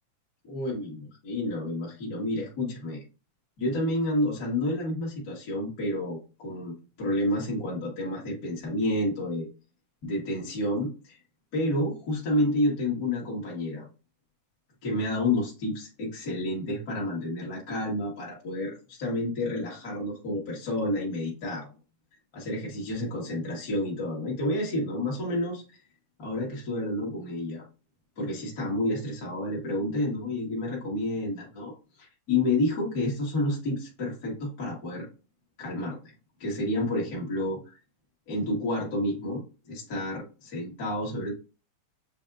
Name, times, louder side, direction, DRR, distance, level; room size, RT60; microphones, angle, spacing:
voice 1, 0.5-3.0 3.6-9.5 10.0-11.2 11.5-13.9 14.8-21.7 22.3-25.8 26.2-27.6 28.2-31.7 32.0-35.1 35.6-36.1 36.4-37.7 38.3-41.3, left 1 dB, 45° left, -5 dB, 1.2 m, -30 dB
7.6 x 2.6 x 2.4 m, 0.33 s
omnidirectional pair, 3.7 m